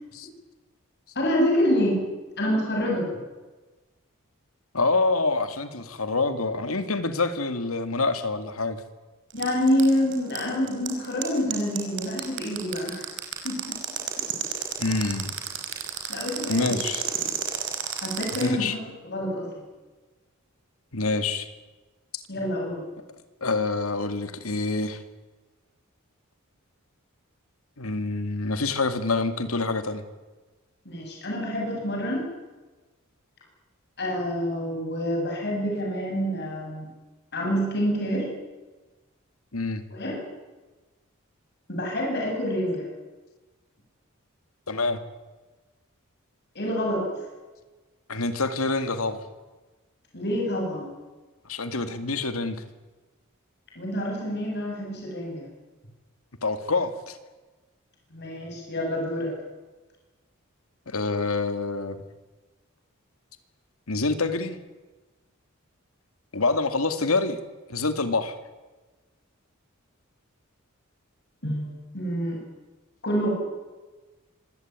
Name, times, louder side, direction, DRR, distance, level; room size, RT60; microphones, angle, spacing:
voice 1, 1.1-2.1 2.4-3.1 9.3-13.1 13.4-13.8 16.1-16.6 18.0-18.8 19.0-19.6 22.3-22.8 30.8-32.3 34.0-36.9 37.3-38.3 39.9-40.2 41.7-42.9 46.5-47.1 50.1-50.9 53.7-55.4 58.1-59.3 71.4-72.4 73.0-73.3, equal, 50° left, -1 dB, 7.9 m, -27 dB
voice 2, 4.7-8.8 14.8-15.3 16.0-16.1 16.5-17.0 18.4-18.7 20.9-21.5 22.1-22.2 23.4-25.0 27.8-30.0 39.5-39.8 44.7-45.0 48.1-49.3 51.5-52.6 56.4-57.2 60.9-62.0 63.9-64.6 66.3-67.4 67.7-68.4, left 3 dB, 85° left, 10 dB, 2.2 m, -26 dB
sound 1, 9.3-18.4, right 10 dB, 60° right, 5.3 m, -30 dB
25.5 x 16.5 x 9.6 m, 1.2 s
head